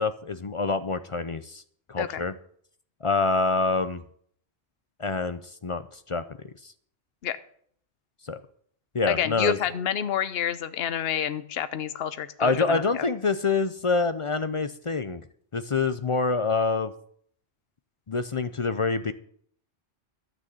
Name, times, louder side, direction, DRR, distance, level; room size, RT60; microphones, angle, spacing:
voice 1, 0.0-1.6 1.9-2.3 3.0-4.0 5.0-6.7 8.3-8.4 8.9-9.6 12.4-15.2 15.5-16.9 18.1-19.1, left 4 dB, 40° left, 12 dB, 0.5 m, -26 dB
voice 2, 9.1-13.0, left 9 dB, 65° left, 12 dB, 1.0 m, -29 dB
12.5 x 6.2 x 7.7 m, 0.62 s
omnidirectional pair, 1.1 m